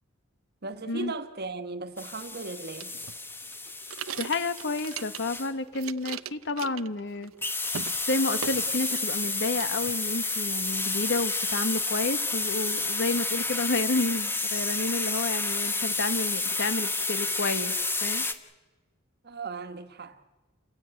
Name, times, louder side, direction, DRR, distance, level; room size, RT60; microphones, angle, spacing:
voice 1, 0.6-2.9 19.2-20.2, right 3 dB, 50° right, 1.5 m, -37 dB
sound 1, 2.0-5.5 7.4-18.3, left 3 dB, 10° left, 1.3 m, -30 dB
sound 2, 2.8-5.4 5.7-7.4 7.6-8.0 8.4-9.3 9.6-10.4, right 8 dB, 80° right, 0.7 m, -40 dB
voice 2, 4.2-7.3 8.1-17.7 18.0-18.2, left 2 dB, 60° left, 1.4 m, -30 dB
30.0 x 16.0 x 9.2 m
head